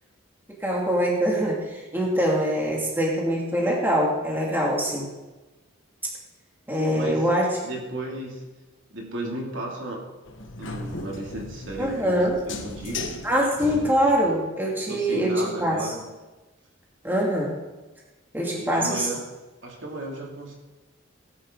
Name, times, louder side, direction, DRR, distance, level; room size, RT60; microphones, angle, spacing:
voice 1, 0.6-5.1 6.7-7.5 11.8-12.4 13.2-15.9 17.0-17.5 18.3-19.1, equal, 10° right, -3 dB, 2.7 m, -24 dB
voice 2, 6.8-7.3 7.6-8.5 8.9-10.1 10.6-13.2 13.8-14.0 14.7-16.1 18.4-19.3 19.6-20.5, right 1 dB, 60° right, -1 dB, 2.9 m, -35 dB
sound 1, 10.3-14.3, left 3 dB, 60° left, 1.4 m, -36 dB
18.0 x 11.0 x 4.0 m, 1.2 s
head